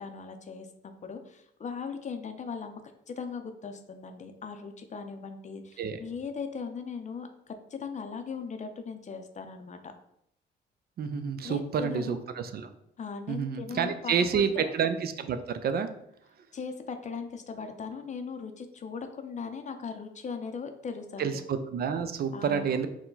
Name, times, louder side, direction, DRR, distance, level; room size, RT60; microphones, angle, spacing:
voice 1, 0.0-9.8 11.4-12.2 13.0-14.7 16.5-21.3 22.3-22.8, left 5 dB, 35° left, 7 dB, 0.5 m, -39 dB
voice 2, 11.0-12.7 13.3-15.9 21.2-22.9, right 7 dB, 50° right, 9 dB, 0.4 m, -29 dB
4.5 x 2.2 x 3.9 m, 0.76 s
cardioid pair, 90°, 20 cm